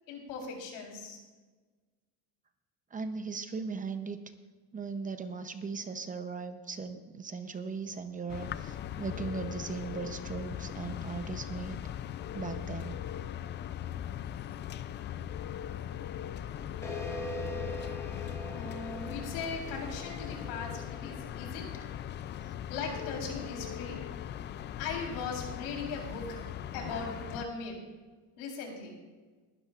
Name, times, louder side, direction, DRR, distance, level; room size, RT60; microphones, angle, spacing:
voice 1, 0.1-1.2 18.4-21.7 22.7-24.0 24.8-26.3 26.7-27.8 28.4-28.9, left 4 dB, 85° left, 1 dB, 3.9 m, -39 dB
voice 2, 2.9-4.2 4.7-11.8 12.3-12.9, right 4 dB, 20° right, 8 dB, 0.7 m, -38 dB
sound 1, 8.3-27.5, left 10 dB, 30° left, 0.3 m, -39 dB
sound 2, 16.8-21.9, left 1 dB, 5° left, 1.6 m, -42 dB
21.0 x 12.0 x 2.5 m, 1.3 s
cardioid pair, 140°, 38 cm